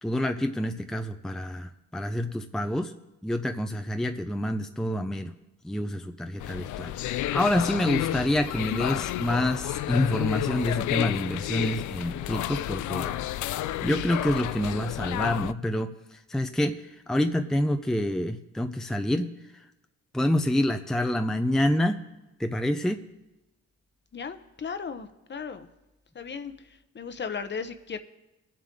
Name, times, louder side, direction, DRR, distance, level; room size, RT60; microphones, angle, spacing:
voice 1, 0.0-2.9 3.2-5.3 5.6-13.1 13.8-19.6 20.1-22.0 22.4-23.0, left 1 dB, ahead, 6 dB, 0.6 m, -27 dB
sound 1, 6.4-15.5, left 13 dB, 75° left, 0.5 m, -31 dB
voice 2, 24.1-25.7 26.1-26.5 26.9-28.0, left 6 dB, 35° left, 10 dB, 0.9 m, -36 dB
22.0 x 7.6 x 3.7 m, 0.99 s
cardioid pair, 90°, 30 cm